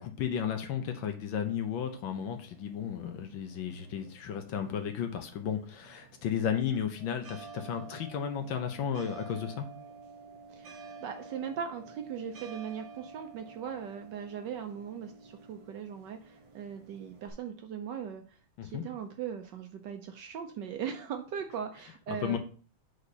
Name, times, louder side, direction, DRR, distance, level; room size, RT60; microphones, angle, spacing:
voice 1, 0.0-9.7 18.6-18.8 22.1-22.4, left 8 dB, 70° left, 6 dB, 1.5 m, -34 dB
sound 1, 1.3-17.3, right 4 dB, 50° right, 0.9 m, -51 dB
voice 2, 10.5-18.4 18.6-22.4, right 7 dB, 70° right, 5 dB, 1.1 m, -39 dB
4.9 x 4.3 x 5.3 m, 0.39 s
omnidirectional pair, 2.4 m